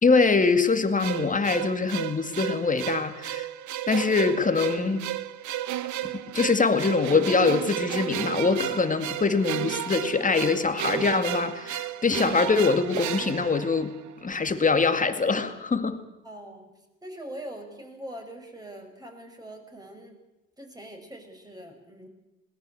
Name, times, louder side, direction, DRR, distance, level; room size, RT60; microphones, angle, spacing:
voice 1, 0.0-3.5 3.9-5.0 6.0-13.9 14.2-16.0, left 4 dB, 20° left, 8 dB, 2.3 m, -23 dB
sound 1, 1.0-14.3, right 12 dB, 50° right, 1.1 m, -33 dB
voice 2, 16.2-16.7 17.0-20.1 20.6-22.1, right 1 dB, 10° right, 3 dB, 5.9 m, -42 dB
21.0 x 18.0 x 8.0 m, 1.0 s
supercardioid pair, 80°, 37 cm